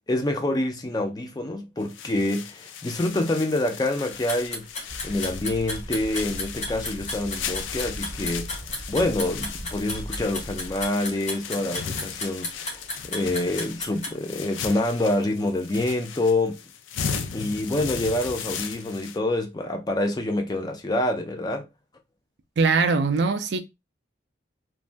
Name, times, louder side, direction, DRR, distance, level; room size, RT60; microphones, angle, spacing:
voice 1, 0.1-4.7 5.0-8.5 8.9-12.8 13.1-16.6 17.3-21.7, left 1 dB, 20° left, 0.4 m, -26 dB
sound 1, 1.8-19.2, left 7 dB, 85° left, 0.4 m, -37 dB
sound 2, 4.1-14.1, left 2 dB, 40° left, 1.2 m, -33 dB
sound 3, 4.9-10.9, equal, 10° right, 0.9 m, -39 dB
voice 2, 22.6-23.6, right 4 dB, 65° right, 0.4 m, -21 dB
3.1 x 2.2 x 2.5 m
head